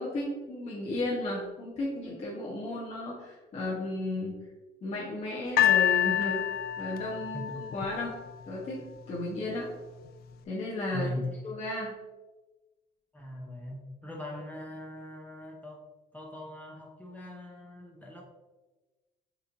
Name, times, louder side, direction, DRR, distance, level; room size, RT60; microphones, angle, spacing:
voice 1, 0.0-4.4 4.8-6.4 6.8-8.1 8.5-8.8 9.1-9.7 10.4-11.1 11.4-11.9, left 1 dB, 40° left, -5 dB, 1.0 m, -34 dB
sound 1, 5.6-8.7 9.5-9.6, left 11 dB, 65° left, 0.4 m, -27 dB
voice 2, 10.9-11.4 13.1-15.9 16.1-18.2, left 1 dB, 10° left, -1 dB, 0.7 m, -40 dB
6.3 x 3.2 x 2.6 m, 1.2 s
cardioid pair, 110°, 17 cm